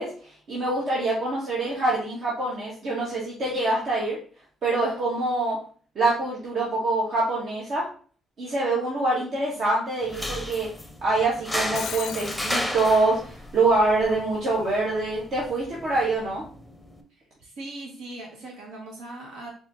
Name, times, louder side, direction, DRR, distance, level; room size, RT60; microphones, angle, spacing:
voice 1, 0.0-4.2 4.6-5.6 5.9-7.9 8.4-10.7 11.0-16.4, right 2 dB, 60° right, -5 dB, 1.4 m, -25 dB
sound 1, 10.0-17.0, left 1 dB, ahead, 0.7 m, -34 dB
Shatter, 11.5-12.6, left 9 dB, 75° left, 0.4 m, -35 dB
voice 2, 17.1-19.5, right 2 dB, 90° right, -2 dB, 1.4 m, -40 dB
4.4 x 2.9 x 3.7 m, 0.43 s
cardioid pair, 90°, 0 cm